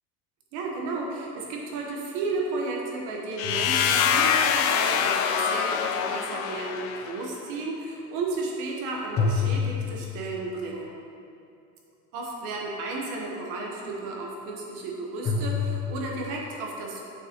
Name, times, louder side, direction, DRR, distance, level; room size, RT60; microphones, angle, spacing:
voice 1, 0.5-11.0 12.1-17.0, right 3 dB, 75° right, -1 dB, 1.3 m, -33 dB
sound 1, 3.4-7.2, left 7 dB, 75° left, 0.5 m, -25 dB
sound 2, 3.4-4.6 9.2-10.7 15.2-16.4, left 5 dB, 30° left, 0.7 m, -29 dB
7.2 x 6.4 x 3.0 m, 2.6 s
cardioid pair, 165°, 33 cm